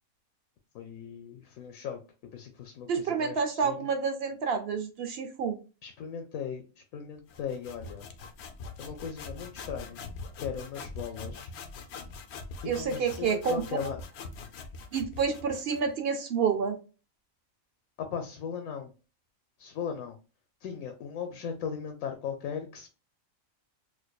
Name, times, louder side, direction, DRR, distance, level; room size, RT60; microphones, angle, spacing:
voice 1, 0.7-3.9 5.8-8.1 8.8-10.0 10.4-11.5 12.6-14.0 18.0-18.9 19.6-20.2 20.6-22.9, left 7 dB, 80° left, 5 dB, 1.0 m, -38 dB
voice 2, 2.9-5.6 12.7-13.6 14.9-16.8, right 6 dB, 60° right, 7 dB, 0.7 m, -29 dB
sound 1, 7.3-15.9, left 3 dB, 60° left, 0.7 m, -43 dB
4.5 x 2.5 x 2.2 m, 0.33 s
omnidirectional pair, 1.4 m